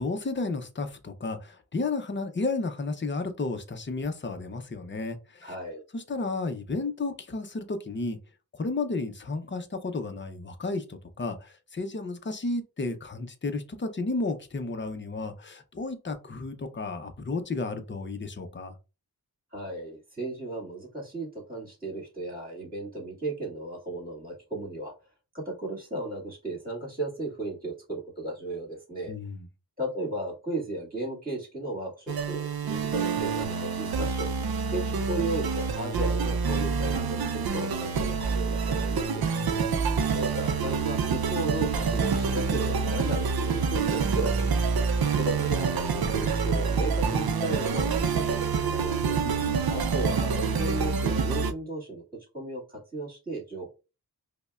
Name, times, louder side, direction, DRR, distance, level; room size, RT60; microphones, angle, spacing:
voice 1, 0.0-5.5 5.9-8.2 8.5-18.7 29.1-29.5 39.3-39.8 49.0-49.6, left 3 dB, 30° left, 0.6 m, -33 dB
voice 2, 5.4-5.8 19.5-24.9 25.3-29.1 29.8-34.3 34.7-39.3 40.1-44.6 45.2-49.2 49.7-52.0 52.3-53.7, right 2 dB, 20° right, 2.0 m, -35 dB
sound 1, 32.1-51.5, right 5 dB, 65° right, 0.5 m, -27 dB
5.2 x 2.1 x 2.3 m
wide cardioid pair, 85°, 39 cm